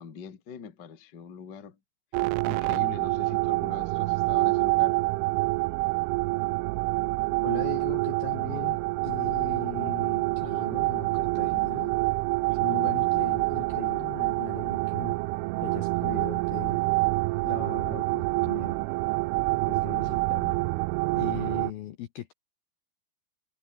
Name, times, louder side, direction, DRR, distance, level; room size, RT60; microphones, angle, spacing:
voice 1, 0.0-1.8 2.2-5.0 12.5-12.6, left 6 dB, 35° left, 1.8 m, -43 dB
sound 1, 2.1-21.7, right 25 dB, 85° right, 3.0 m, -27 dB
voice 2, 7.4-8.8 9.0-11.9 12.6-15.2 15.6-16.8 17.4-18.8 19.7-20.6 21.2-22.3, left 13 dB, 70° left, 2.4 m, -39 dB
omnidirectional pair, 5.5 m